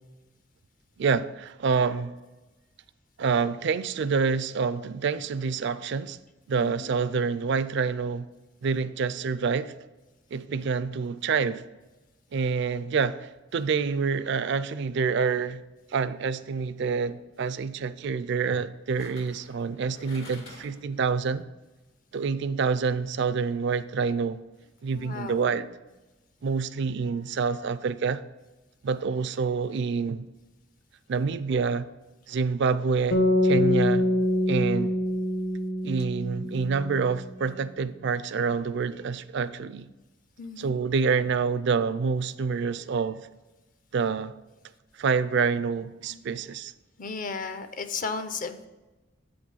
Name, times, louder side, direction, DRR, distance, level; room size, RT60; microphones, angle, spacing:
voice 1, 1.0-2.1 3.2-6.2 6.5-8.3 8.6-9.7 10.3-11.6 12.3-15.6 15.9-21.4 22.1-24.4 24.8-25.7 26.4-28.2 28.8-30.2 31.1-31.9 32.3-34.1 34.5-34.9 35.8-39.9 40.6-43.3 43.9-44.3 45.0-46.7, right 5 dB, 65° right, 0.4 m, -27 dB
voice 2, 6.6-6.9 24.9-25.6 40.4-40.8 46.1-46.2 47.0-48.7, left 4 dB, 45° left, 0.6 m, -35 dB
sound 1, 16.4-16.6 19.0-20.9 21.3-21.4, left 2 dB, 85° left, 2.0 m, -47 dB
sound 2, 33.1-37.3, left 1 dB, 60° left, 1.0 m, -25 dB
8.4 x 5.2 x 5.5 m
head